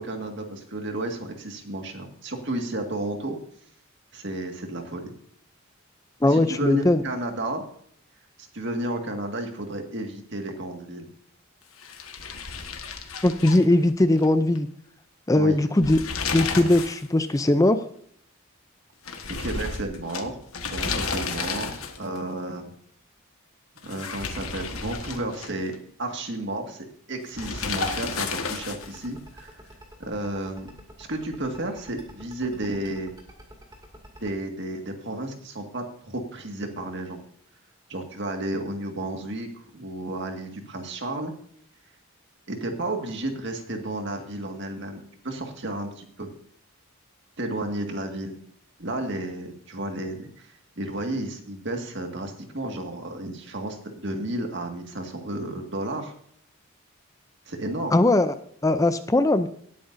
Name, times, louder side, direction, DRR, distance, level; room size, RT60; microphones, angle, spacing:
voice 1, 0.0-3.4 4.1-5.1 6.3-7.6 8.5-11.1 15.4-15.6 19.4-20.4 20.7-22.7 23.8-29.6 30.0-30.7 31.0-33.1 34.2-37.2 37.9-41.3 42.5-46.3 47.4-48.4 48.8-56.1 57.5-57.9, right 1 dB, 55° right, 4 dB, 1.9 m, -32 dB
voice 2, 6.2-7.0 13.2-14.7 15.3-16.0 16.3-17.8 57.9-58.3 58.6-59.5, left 1 dB, 15° left, 11 dB, 0.4 m, -20 dB
sound 1, 11.8-14.3 14.6-14.7 15.7-17.1 17.4-17.5 19.1-22.2 23.8-25.8 27.3-29.0, left 4 dB, 90° left, 1.5 m, -32 dB
sound 2, 27.4-34.3, right 1 dB, 20° right, 2.4 m, -46 dB
18.5 x 8.8 x 2.7 m, 0.63 s
head